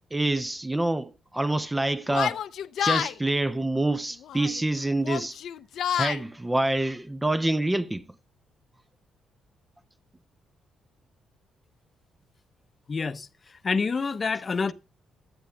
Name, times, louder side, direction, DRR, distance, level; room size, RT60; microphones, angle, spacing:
voice 1, 0.1-2.4 2.8-5.4 5.9-8.0, right 2 dB, 10° right, 0.5 m, -26 dB
Yell, 2.1-3.1 4.2-4.6 5.0-6.2, left 10 dB, 70° left, 0.5 m, -28 dB
voice 2, 12.9-13.3 13.6-14.7, left 4 dB, 35° left, 0.7 m, -27 dB
16.0 x 11.5 x 2.3 m
cardioid pair, 110°, 0 cm